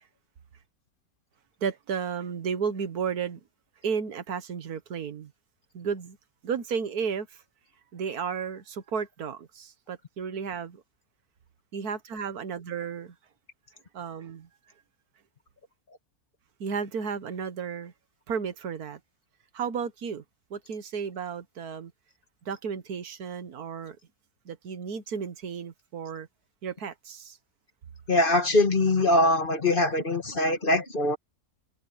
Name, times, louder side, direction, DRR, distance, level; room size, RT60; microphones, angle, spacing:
voice 1, 1.6-3.4 3.8-5.3 5.7-6.2 6.4-7.4 7.9-10.8 11.7-13.2 13.9-14.5 16.6-17.9 18.3-19.0 19.5-20.2 20.5-21.9 22.5-24.0 24.5-26.3 26.6-27.4, right 6 dB, 80° right, 1.7 m, -33 dB
voice 2, 28.1-31.2, left 2 dB, 35° left, 1.8 m, -23 dB
open air
omnidirectional pair, 1.6 m